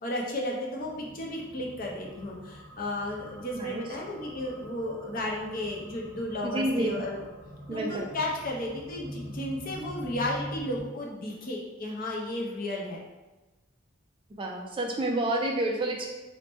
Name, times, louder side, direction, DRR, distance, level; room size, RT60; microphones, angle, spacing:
voice 1, 0.0-7.2 7.7-13.0, left 1 dB, 45° left, -2 dB, 0.6 m, -33 dB
sound 1, 0.8-10.8, equal, 70° right, 0.9 m, -44 dB
voice 2, 3.5-3.8 6.5-7.0 7.7-8.1 14.4-16.1, right 1 dB, 25° right, 1 dB, 0.3 m, -29 dB
3.0 x 2.1 x 4.1 m, 1.1 s
head